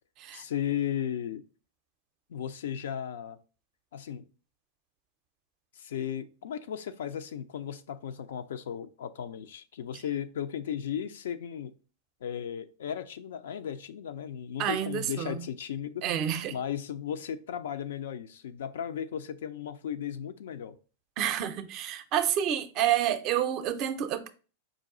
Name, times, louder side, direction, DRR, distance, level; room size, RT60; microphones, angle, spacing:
voice 1, 0.3-1.4 2.3-3.4 3.9-4.2 5.8-11.8 12.2-16.1 16.5-20.8, left 9 dB, 75° left, 0.4 m, -35 dB
voice 2, 14.6-15.5 16.0-16.6 21.2-24.3, right 10 dB, 45° right, 0.5 m, -29 dB
5.0 x 2.3 x 3.7 m
hypercardioid pair, 105°, 0 cm